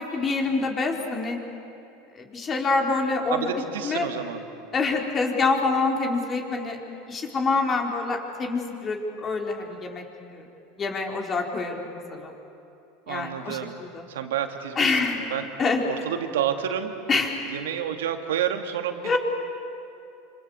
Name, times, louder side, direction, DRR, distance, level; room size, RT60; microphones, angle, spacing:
voice 1, 0.0-1.4 2.1-4.1 4.7-6.8 7.1-10.0 10.3-10.5 10.8-12.3 13.1-14.0 14.8-15.3 15.6-15.8 17.1-17.3 19.0-19.2, left 3 dB, 30° left, 1 dB, 4.6 m, -26 dB
voice 2, 3.3-4.5 13.1-13.8 14.1-15.5 15.8-16.9 17.5-19.2, right 9 dB, 90° right, 6 dB, 2.2 m, -29 dB
27.5 x 26.0 x 8.2 m, 2.8 s
supercardioid pair, 105°, 0 cm